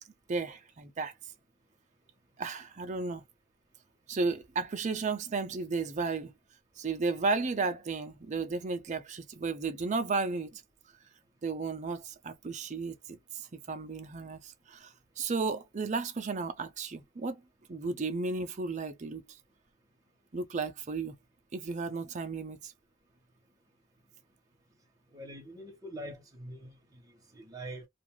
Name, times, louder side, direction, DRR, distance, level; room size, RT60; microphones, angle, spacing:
voice 1, 0.3-1.1 2.4-3.2 4.1-6.3 6.8-10.6 11.4-17.4 17.7-19.2 20.3-21.2 21.5-22.7, right 4 dB, 40° right, 0.5 m, -34 dB
voice 2, 25.1-26.7 27.4-27.8, right 1 dB, 20° right, 1.0 m, -43 dB
2.5 x 2.3 x 2.9 m
head